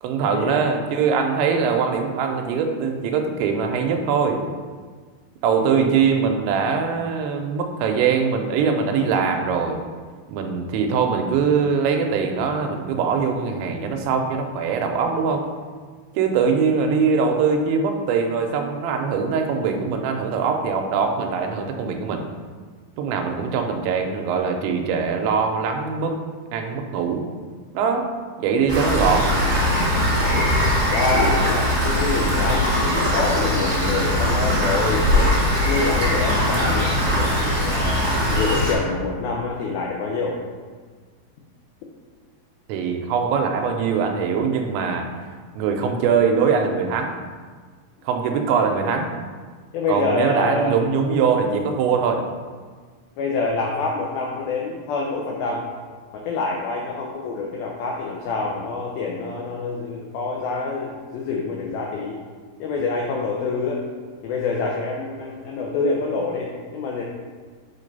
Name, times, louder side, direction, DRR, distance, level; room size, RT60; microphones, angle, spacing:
voice 1, 0.0-4.4 5.4-9.8 10.3-15.5 16.1-22.2 23.0-26.2 26.5-27.3 27.7-28.1 28.4-29.3 42.7-45.0 45.6-47.1 48.0-49.1 49.9-52.2, right 5 dB, 85° right, 4 dB, 2.9 m, -22 dB
voice 2, 5.6-6.0 23.5-23.6 30.9-35.1 35.6-38.0 38.3-40.4 49.7-50.8 53.2-55.6 56.2-62.2 62.6-63.8 64.2-67.0, left 3 dB, 85° left, -1 dB, 2.1 m, -26 dB
Rain, 28.7-38.7, left 1 dB, 55° right, 0.8 m, -20 dB
7.9 x 3.3 x 5.3 m, 1.5 s
omnidirectional pair, 5.2 m